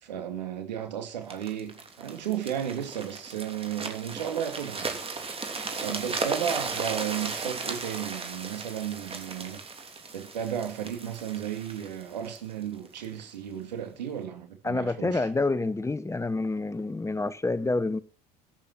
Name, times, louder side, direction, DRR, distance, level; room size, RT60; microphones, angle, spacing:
voice 1, 0.0-5.0 5.8-9.6 10.1-15.3, right 9 dB, 85° right, 2.4 m, -34 dB
sound 1, 1.3-13.1 13.7-13.9, right 4 dB, 25° right, 3.0 m, -36 dB
voice 2, 14.6-18.0, left 3 dB, 15° left, 1.0 m, -28 dB
13.5 x 8.9 x 6.0 m
hypercardioid pair, 65°, 21 cm